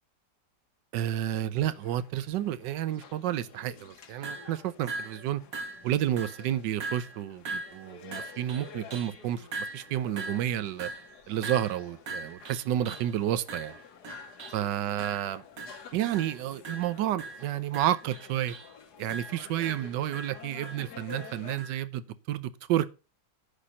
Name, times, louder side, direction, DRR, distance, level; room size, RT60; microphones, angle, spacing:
voice 1, 0.9-5.4 5.8-10.9 11.3-13.8 14.5-15.4 15.9-18.5 19.0-22.9, right 12 dB, 75° right, 1.3 m, -30 dB
sound 1, 1.6-21.6, left 7 dB, 65° left, 1.6 m, -50 dB
sound 2, 4.2-4.5 4.9-5.3 5.5-5.9 6.2-6.5 6.8-7.2 7.5-9.2 9.5-13.1 13.5-14.7 15.0-15.3 15.6-15.9 16.1-16.4 16.7-18.7 19.1-21.8, right 3 dB, 55° right, 1.6 m, -40 dB
9.9 x 4.3 x 6.2 m
omnidirectional pair, 1.9 m